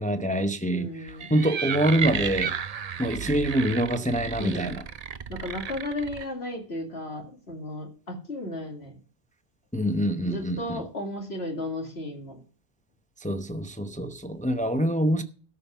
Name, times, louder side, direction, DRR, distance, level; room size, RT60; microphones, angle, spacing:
voice 1, 0.0-2.5 3.0-4.8 9.7-10.8 13.2-15.2, right 1 dB, 10° left, 0.6 m, -25 dB
voice 2, 0.7-1.3 4.4-4.8 5.3-8.9 10.2-12.4, left 1 dB, 70° left, 2.7 m, -34 dB
sound 1, 1.1-6.3, right 7 dB, 45° right, 0.6 m, -33 dB
13.0 x 5.4 x 7.0 m
omnidirectional pair, 1.1 m